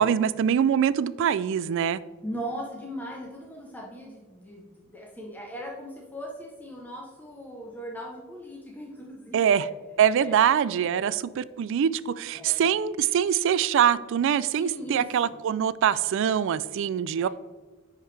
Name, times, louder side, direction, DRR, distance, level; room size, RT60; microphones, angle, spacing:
voice 1, 0.0-2.0 9.3-9.7 10.0-17.3, right 8 dB, 65° right, 17 dB, 0.3 m, -24 dB
voice 2, 2.2-9.7 10.1-10.4 10.9-11.1 12.3-12.7 14.6-15.3 17.2-17.3, equal, 10° left, -2 dB, 0.8 m, -39 dB
10.0 x 4.8 x 3.3 m, 1.3 s
head